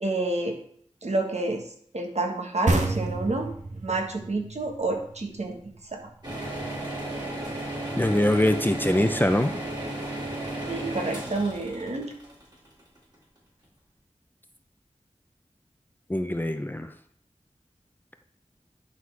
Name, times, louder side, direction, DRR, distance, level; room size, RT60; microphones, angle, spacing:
voice 1, 0.0-0.6 1.0-1.7 1.9-6.0 10.7-12.1, right 2 dB, 65° right, 1 dB, 1.5 m, -29 dB
sound 1, 2.7-6.1, right 2 dB, 85° right, 1.0 m, -29 dB
sound 2, 6.2-13.1, right 1 dB, 35° right, 3.5 m, -34 dB
voice 2, 8.0-9.6 16.1-16.9, left 1 dB, 15° left, 8 dB, 0.6 m, -23 dB
10.0 x 4.0 x 4.7 m, 0.63 s
wide cardioid pair, 45°, 12 cm